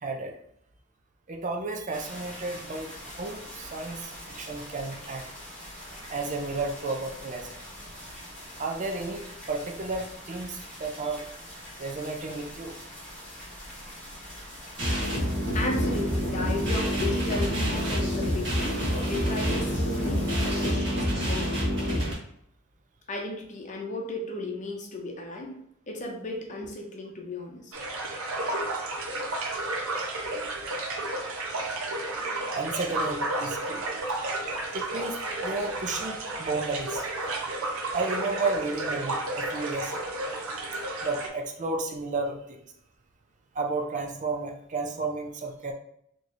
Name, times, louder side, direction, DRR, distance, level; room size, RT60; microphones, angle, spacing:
voice 1, 0.0-0.4 1.3-5.3 6.1-7.6 8.6-11.2 11.8-12.8 32.2-33.9 34.6-37.0 37.9-40.1 41.0-42.6 43.5-45.7, right 3 dB, 35° right, 2 dB, 0.4 m, -32 dB
sound 1, 1.9-20.7, equal, 5° left, 1.3 m, -44 dB
sound 2, 14.8-22.1, equal, 60° right, 1.4 m, -27 dB
voice 2, 15.5-21.6 23.1-25.6 25.9-27.7, left 2 dB, 35° left, 1 dB, 0.7 m, -35 dB
sound 3, 27.7-41.3, right 2 dB, 80° right, 0.7 m, -32 dB
4.2 x 3.0 x 2.5 m, 0.71 s
head